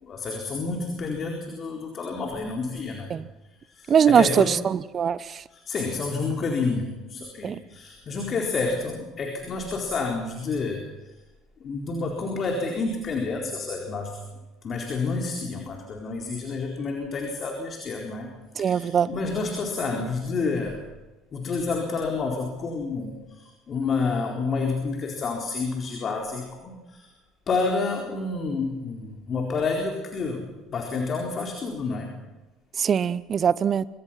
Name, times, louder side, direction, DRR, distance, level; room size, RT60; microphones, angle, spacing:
voice 1, 0.0-3.2 3.7-4.6 5.5-10.9 11.6-14.2 14.6-18.3 18.6-20.8 21.3-27.1 27.5-32.2, left 4 dB, 40° left, 2 dB, 4.3 m, -29 dB
voice 2, 3.9-5.2 7.4-7.6 18.6-19.1 32.8-33.8, right 7 dB, 40° right, 18 dB, 1.0 m, -21 dB
25.5 x 25.0 x 5.9 m, 1.1 s
figure-of-eight pair, 60°, 0 cm